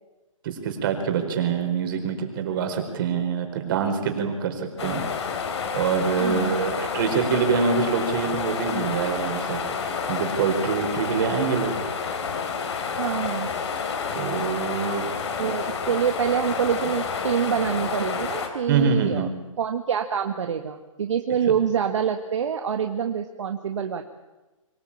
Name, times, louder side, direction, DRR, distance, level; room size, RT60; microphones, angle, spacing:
voice 1, 0.4-5.0 5.7-9.6 10.1-11.7 14.1-15.1 18.7-19.3, right 6 dB, 40° right, 5 dB, 4.7 m, -25 dB
sound 1, 4.8-18.5, left 5 dB, 55° left, 4.2 m, -29 dB
voice 2, 6.2-6.6 11.0-11.1 13.0-13.5 15.4-19.3 19.6-24.0, right 7 dB, 60° right, 6 dB, 1.9 m, -26 dB
25.5 x 17.0 x 8.8 m, 1.1 s
hypercardioid pair, 150°, 17 cm